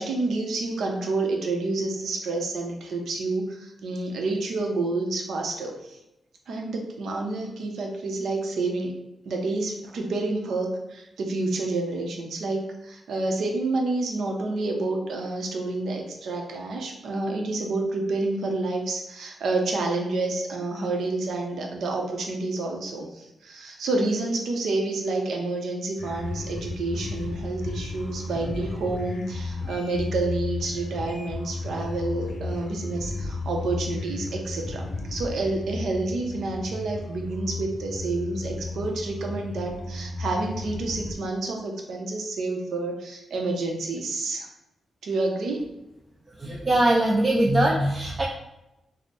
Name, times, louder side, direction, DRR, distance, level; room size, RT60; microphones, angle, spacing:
voice 1, 0.0-6.0 6.5-8.9 9.3-34.8 35.1-44.5 45.0-45.7, right 2 dB, 75° right, 1 dB, 0.6 m, -29 dB
sound 1, 26.0-41.1, left 3 dB, 80° left, 0.6 m, -34 dB
voice 2, 46.4-48.2, right 1 dB, 25° right, -2 dB, 0.4 m, -21 dB
3.2 x 2.0 x 4.2 m, 0.91 s
wide cardioid pair, 150°, 0 cm